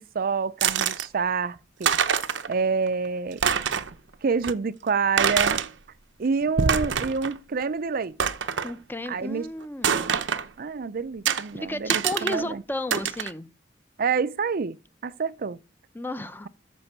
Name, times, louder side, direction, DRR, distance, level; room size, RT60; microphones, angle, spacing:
voice 1, 0.0-1.9 2.5-3.4 4.2-5.6 6.2-8.2 9.1-9.5 10.6-12.6 14.0-14.8 15.0-15.6, right 5 dB, 55° right, 0.5 m, -27 dB
sound 1, 0.6-1.1 1.6-1.7 1.8-2.5 2.9-3.0 3.3-3.9 4.4-4.5 5.2-5.7 6.4-7.4 7.6-7.7 8.2-8.7 9.8-10.5 11.3-11.4 11.9-12.4 12.9-13.3, right 7 dB, 90° right, 0.8 m, -25 dB
voice 2, 8.6-10.2 11.5-13.5 15.9-16.5, left 1 dB, 10° left, 0.6 m, -33 dB
14.0 x 5.3 x 6.7 m
head